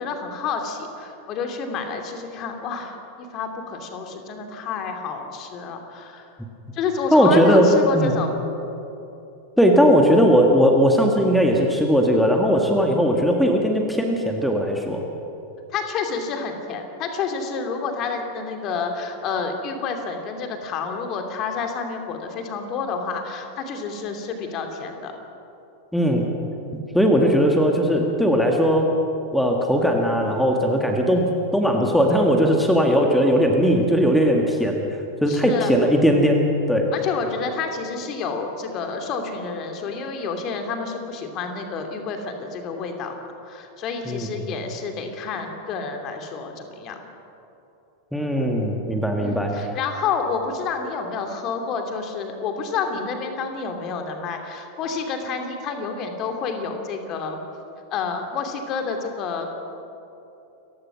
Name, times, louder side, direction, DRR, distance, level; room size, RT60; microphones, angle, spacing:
voice 1, 0.0-6.2 6.7-8.3 15.7-25.1 35.3-35.7 36.9-43.1 43.5-47.0 49.2-57.4 57.9-59.5, left 5 dB, 35° left, 5 dB, 2.7 m, -29 dB
voice 2, 7.1-7.7 7.9-8.1 9.6-15.0 25.9-26.2 26.9-28.9 29.3-34.8 35.2-36.9 44.1-44.3 48.1-49.5, equal, ahead, 1 dB, 2.1 m, -18 dB
29.0 x 15.5 x 6.1 m, 2.9 s
figure-of-eight pair, 90°, 0 cm